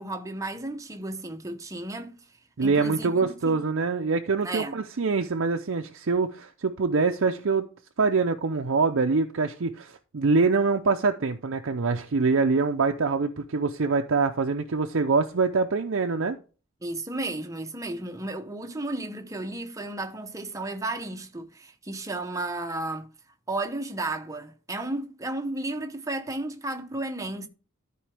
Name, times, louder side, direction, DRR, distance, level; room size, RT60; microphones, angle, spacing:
voice 1, 0.0-2.2 2.6-3.6 4.4-4.8 16.8-23.1 23.5-27.5, right 2 dB, 15° right, 0.8 m, -33 dB
voice 2, 2.6-7.7 8.0-16.4, right 4 dB, 60° right, 0.6 m, -24 dB
13.0 x 4.6 x 3.4 m
head